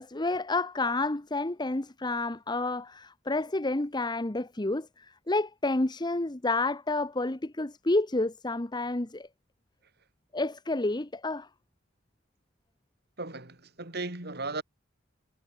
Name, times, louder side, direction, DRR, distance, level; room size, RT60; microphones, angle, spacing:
voice 1, 0.0-9.3 10.3-11.5, left 2 dB, 20° left, 1.0 m, -30 dB
voice 2, 13.2-14.6, right 3 dB, 55° right, 4.6 m, -36 dB
head